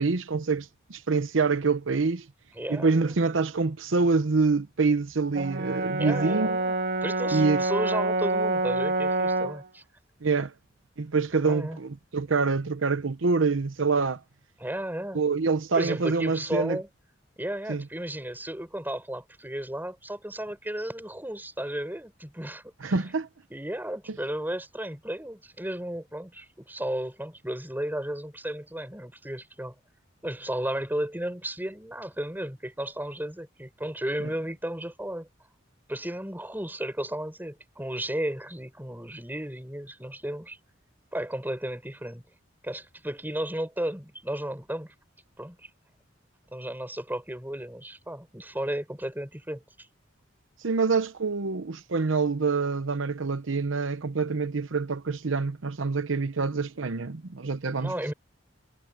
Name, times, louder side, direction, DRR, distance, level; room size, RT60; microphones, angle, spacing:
voice 1, 0.0-2.3 2.7-6.6 7.3-7.6 10.2-10.5 11.0-14.2 15.1-16.8 17.7-17.8 22.8-23.3 24.1-24.2 34.2-34.3 50.6-58.1, right 4 dB, 85° right, 0.8 m, -26 dB
voice 2, 2.6-3.2 6.0-9.8 11.4-11.8 14.6-15.2 15.7-16.9 17.4-23.0 23.5-29.7 30.2-35.3 35.9-40.6 41.1-42.2 42.6-44.9 45.4-45.7 46.5-49.9 57.8-58.1, right 1 dB, 10° right, 7.4 m, -34 dB
Brass instrument, 5.3-9.6, right 2 dB, 60° right, 2.2 m, -27 dB
head